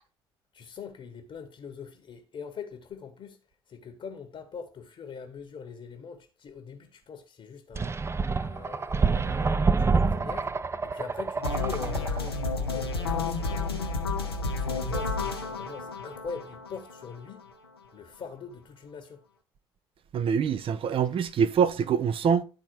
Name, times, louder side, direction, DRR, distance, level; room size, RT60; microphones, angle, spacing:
voice 1, 0.5-3.4 3.7-8.1 8.4-10.5 10.8-13.8 14.5-17.5 17.9-19.2, left 6 dB, 45° left, 1.3 m, -42 dB
sound 1, 7.8-12.3, right 4 dB, 20° right, 0.5 m, -27 dB
sound 2, 11.4-17.4, left 3 dB, 85° left, 0.9 m, -31 dB
voice 2, 20.1-22.4, right 7 dB, 45° right, 0.8 m, -24 dB
11.5 x 4.2 x 4.7 m
figure-of-eight pair, 50°, 13 cm